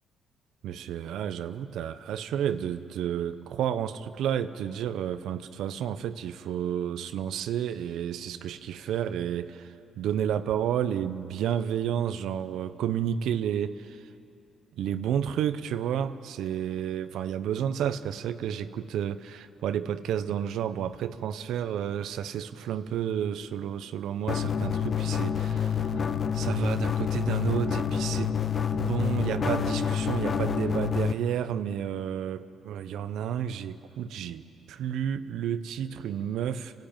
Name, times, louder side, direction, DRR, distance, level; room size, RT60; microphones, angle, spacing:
voice 1, 0.6-14.0 14.8-25.9 26.3-28.3 28.7-36.7, right 9 dB, 80° right, 12 dB, 0.7 m, -31 dB
sound 1, 24.3-31.1, left 7 dB, 45° left, 1.0 m, -28 dB
27.5 x 13.5 x 8.9 m, 2.8 s
cardioid pair, 90°, 0 cm